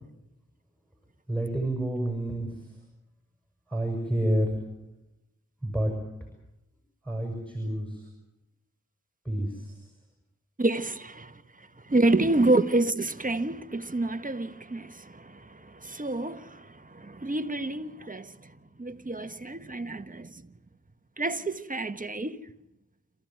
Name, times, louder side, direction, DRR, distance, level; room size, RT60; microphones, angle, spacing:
voice 1, 1.3-2.5 3.7-4.5 5.6-5.9 7.1-8.0 9.3-9.8, right 1 dB, 5° left, 7.0 m, -28 dB
voice 2, 10.6-18.5 18.8-20.5 21.2-22.5, right 2 dB, 25° right, 1.3 m, -28 dB
27.5 x 15.0 x 9.3 m
cardioid pair, 50°, 31 cm